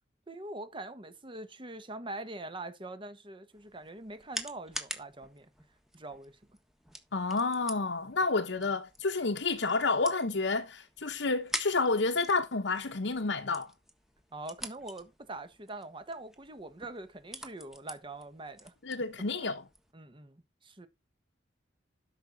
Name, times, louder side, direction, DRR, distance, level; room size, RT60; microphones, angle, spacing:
voice 1, 0.3-5.5 5.9-6.4 14.3-18.7 19.3-19.5 19.9-20.9, right 2 dB, 25° right, 1.3 m, -43 dB
sound 1, 3.5-19.9, equal, ahead, 1.4 m, -46 dB
voice 2, 7.1-13.7 18.8-19.6, left 3 dB, 70° left, 1.0 m, -30 dB
12.5 x 6.0 x 4.0 m
head